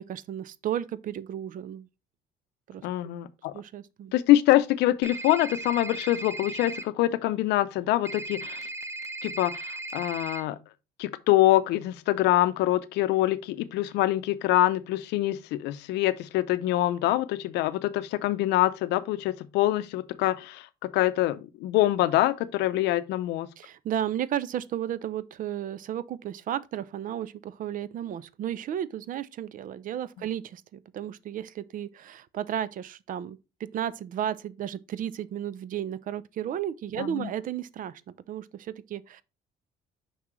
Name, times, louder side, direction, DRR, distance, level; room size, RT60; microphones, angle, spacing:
voice 1, 0.0-1.9 2.7-3.1 3.5-4.1 23.6-38.0 38.3-39.2, right 10 dB, 55° right, 0.5 m, -33 dB
voice 2, 2.8-3.5 4.1-8.6 9.2-10.6 11.0-23.5 37.0-37.3, left 15 dB, 85° left, 0.6 m, -25 dB
sound 1, 5.0-6.8 8.1-10.4, right 2 dB, 15° right, 0.7 m, -37 dB
5.9 x 5.5 x 3.1 m
cardioid pair, 110°, 17 cm